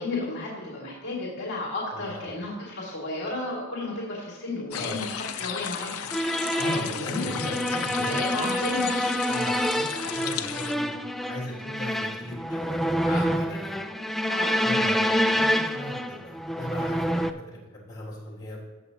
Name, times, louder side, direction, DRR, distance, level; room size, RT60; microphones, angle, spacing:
voice 1, 0.0-6.1 6.5-7.2 8.0-8.9 14.3-14.9, left 2 dB, 55° left, -4 dB, 2.4 m, -33 dB
voice 2, 1.9-2.3 4.7-5.0 6.6-8.7 9.3-9.9 10.1-10.9 11.3-13.8 14.6-18.6, left 1 dB, 20° left, -7 dB, 3.5 m, -37 dB
sound 1, 4.7-10.7, left 9 dB, 80° left, 0.6 m, -34 dB
sound 2, 6.1-17.3, equal, ahead, 0.3 m, -27 dB
16.5 x 6.8 x 2.9 m, 1.3 s
head